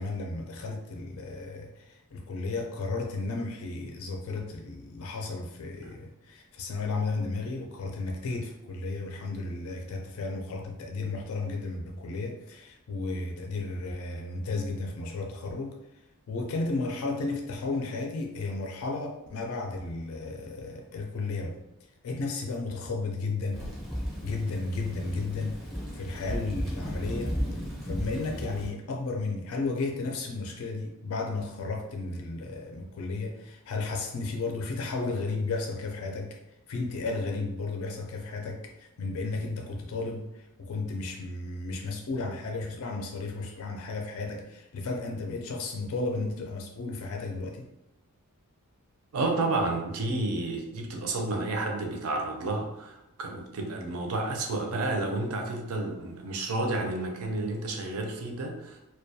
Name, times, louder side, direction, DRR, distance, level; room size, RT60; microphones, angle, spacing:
voice 1, 0.0-15.7 16.3-21.6 22.0-23.7 24.2-25.6 25.9-27.4 27.8-36.4 36.7-47.7, left 3 dB, 65° left, 1 dB, 0.4 m, -33 dB
Thunder / Rain, 23.5-28.7, equal, ahead, 0.5 m, -35 dB
voice 2, 49.1-58.8, right 2 dB, 70° right, 3 dB, 0.5 m, -31 dB
2.3 x 2.2 x 2.6 m, 0.90 s
head